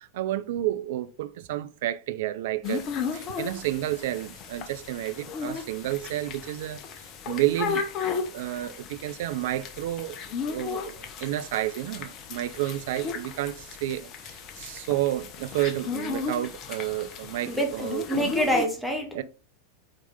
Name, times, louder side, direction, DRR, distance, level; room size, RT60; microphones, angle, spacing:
voice 1, 0.0-2.8 3.1-6.8 7.3-18.1 19.1-19.2, right 14 dB, 55° right, 0.4 m, -31 dB
sound 1, 2.6-18.7, left 6 dB, 35° left, 0.9 m, -35 dB
voice 2, 18.1-19.2, equal, 5° left, 1.3 m, -26 dB
5.1 x 4.6 x 4.0 m
figure-of-eight pair, 90°, 0 cm